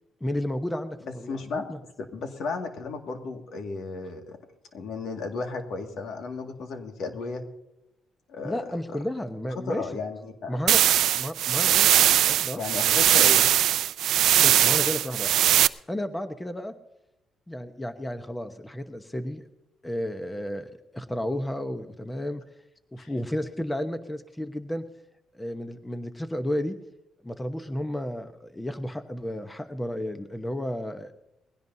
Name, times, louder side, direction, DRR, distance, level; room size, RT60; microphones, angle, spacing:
voice 1, 0.2-1.8 8.4-9.9 10.5-10.8 11.1-13.0 14.4-15.4 15.9-16.7 17.5-19.5 19.8-22.4 22.9-24.8 25.3-26.7 27.2-31.1, left 1 dB, 10° left, 8 dB, 1.0 m, -32 dB
voice 2, 1.3-4.4 4.7-7.4 8.3-8.5 8.9-9.0 9.6-10.6 12.6-13.5 23.0-23.1, left 4 dB, 70° left, 4 dB, 2.0 m, -34 dB
sound 1, 10.7-15.7, right 12 dB, 75° right, 0.4 m, -20 dB
20.5 x 16.5 x 2.8 m, 0.90 s
cardioid pair, 100°, 0 cm